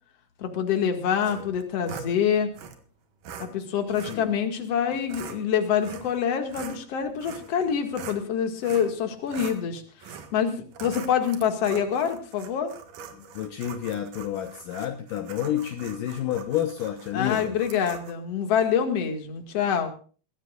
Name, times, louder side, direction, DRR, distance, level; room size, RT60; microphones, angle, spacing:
voice 1, 0.4-2.5 3.4-9.8 10.3-12.7 17.1-19.9, left 8 dB, 45° left, 5 dB, 2.8 m, -26 dB
sound 1, 1.2-2.1 2.5-2.8 3.2-3.5 3.9-4.2 4.9-5.4 5.8-6.2 6.5-8.2 8.6-8.9 9.3-9.6 10.0-10.3 10.7-18.1, right 6 dB, 65° right, 3.1 m, -42 dB
voice 2, 13.1-17.6, left 11 dB, 70° left, 6 dB, 2.5 m, -30 dB
22.0 x 16.0 x 2.5 m, 0.39 s
omnidirectional pair, 4.3 m